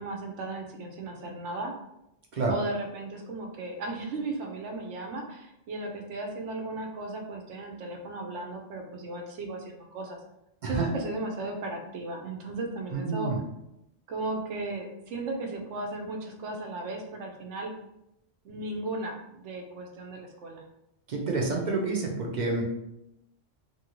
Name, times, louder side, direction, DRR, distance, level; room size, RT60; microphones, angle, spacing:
voice 1, 0.0-1.7 2.5-10.2 10.6-13.3 14.1-17.7 18.4-19.2 19.4-20.6, right 2 dB, 80° right, 2 dB, 1.0 m, -36 dB
voice 2, 12.9-13.4 21.1-22.6, right 3 dB, 50° right, -1 dB, 0.6 m, -28 dB
2.7 x 2.7 x 2.9 m, 0.85 s
omnidirectional pair, 1.2 m